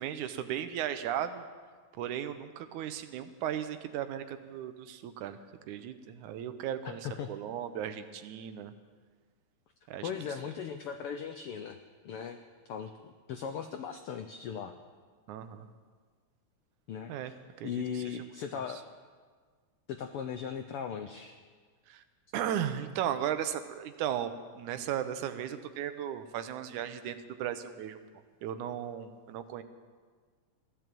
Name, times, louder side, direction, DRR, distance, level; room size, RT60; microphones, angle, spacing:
voice 1, 0.0-1.4 2.0-5.4 5.7-8.7 9.9-10.1 15.3-15.7 17.1-17.3 17.6-18.2 18.5-18.6 21.9-22.0 22.3-28.0 28.4-29.6, right 10 dB, 90° right, 10 dB, 2.3 m, -36 dB
voice 2, 10.0-11.8 12.0-12.4 12.7-14.7 16.9-17.3 17.6-18.8 19.9-21.3, left 7 dB, 90° left, 6 dB, 1.2 m, -38 dB
15.5 x 11.5 x 7.7 m, 1.6 s
omnidirectional pair, 3.4 m